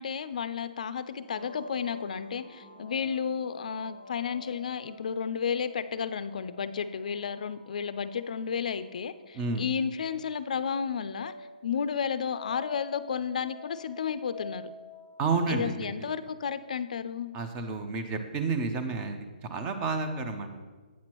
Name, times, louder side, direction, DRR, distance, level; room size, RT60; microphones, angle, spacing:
voice 1, 0.0-11.3 11.6-14.7 15.5-17.3, left 7 dB, 55° left, 13 dB, 0.3 m, -32 dB
sound 1, 1.1-16.8, left 2 dB, 5° left, 0.9 m, -49 dB
voice 2, 15.2-16.1 17.3-20.6, right 4 dB, 15° right, 7 dB, 0.4 m, -31 dB
8.2 x 6.0 x 2.9 m, 1.4 s
hypercardioid pair, 170°, 5 cm